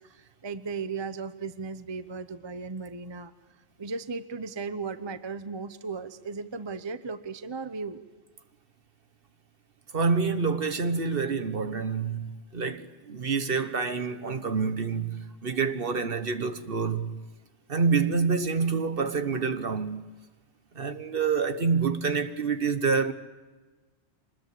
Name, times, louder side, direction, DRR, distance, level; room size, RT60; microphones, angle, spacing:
voice 1, 0.0-3.3 3.8-8.0, right 4 dB, 25° right, 0.8 m, -36 dB
voice 2, 9.9-17.2 17.7-20.0 20.7-23.1, right 5 dB, 55° right, 1.4 m, -27 dB
25.5 x 20.5 x 8.4 m
omnidirectional pair, 1.2 m